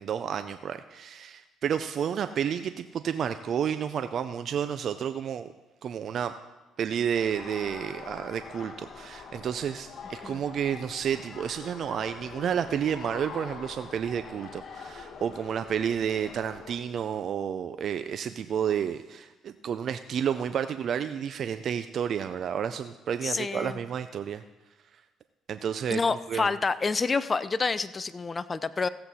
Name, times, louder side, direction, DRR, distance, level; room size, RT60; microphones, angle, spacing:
voice 1, 0.0-5.5 5.8-6.3 6.8-24.4 25.5-26.5, right 8 dB, 55° right, 10 dB, 0.4 m, -31 dB
sound 1, 7.1-16.8, left 5 dB, 50° left, 1.2 m, -44 dB
voice 2, 23.2-23.8 25.9-28.9, left 4 dB, 30° left, 14 dB, 0.4 m, -28 dB
15.5 x 7.7 x 4.2 m, 1.1 s
cardioid pair, 90°, 0 cm